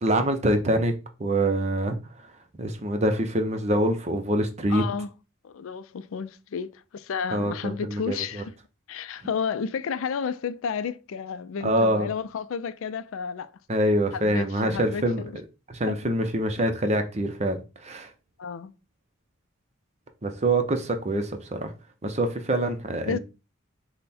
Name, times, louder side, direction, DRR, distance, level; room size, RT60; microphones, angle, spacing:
voice 1, 0.0-0.9 1.2-2.3 2.6-4.8 7.3-8.4 11.6-12.1 13.7-15.2 15.7-18.1 20.2-21.7 22.0-23.2, right 1 dB, 30° right, 0.6 m, -25 dB
voice 2, 4.7-5.1 5.4-8.5 8.9-13.5 14.1-15.3 15.9-16.0 18.4-18.7 23.0-23.2, left 6 dB, 75° left, 0.4 m, -32 dB
5.5 x 2.1 x 4.2 m
head